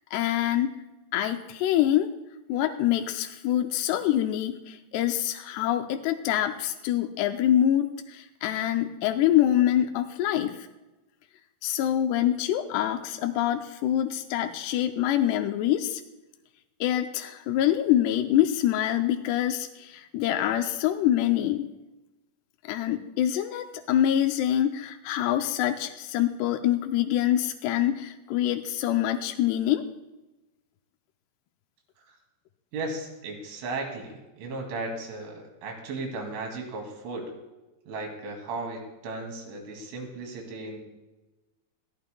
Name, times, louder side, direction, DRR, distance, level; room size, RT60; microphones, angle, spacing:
voice 1, 0.1-0.7 1.1-2.1 2.5-10.7 11.6-16.0 16.8-21.7 22.7-29.8, left 12 dB, 85° left, 5 dB, 2.4 m, -25 dB
voice 2, 32.7-37.3 37.9-40.8, right 2 dB, 90° right, 2 dB, 5.0 m, -36 dB
22.0 x 15.0 x 2.3 m, 1.0 s
omnidirectional pair, 5.3 m